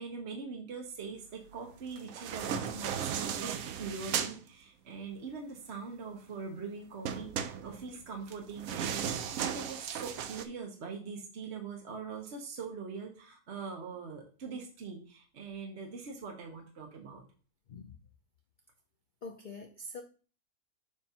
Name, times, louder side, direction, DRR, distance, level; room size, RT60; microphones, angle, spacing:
voice 1, 0.0-17.2, right 5 dB, 50° right, 1 dB, 1.2 m, -42 dB
sound 1, 1.9-4.4 7.1-10.5, right 8 dB, 70° right, 1.0 m, -36 dB
voice 2, 19.2-20.0, left 2 dB, 55° left, 4 dB, 0.5 m, -44 dB
7.0 x 2.6 x 5.5 m, 0.38 s
omnidirectional pair, 1.5 m